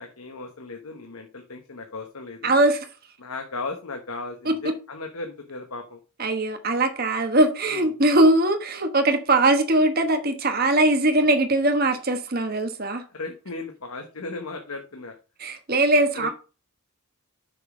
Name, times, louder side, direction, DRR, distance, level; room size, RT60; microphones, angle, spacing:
voice 1, 0.0-2.5 3.2-6.0 7.7-7.9 13.1-15.2 16.1-16.3, left 3 dB, 75° left, 1.2 m, -36 dB
voice 2, 2.4-2.8 4.4-4.7 6.2-13.0 15.4-16.3, right 2 dB, 40° right, 1.2 m, -21 dB
6.6 x 6.1 x 4.9 m
head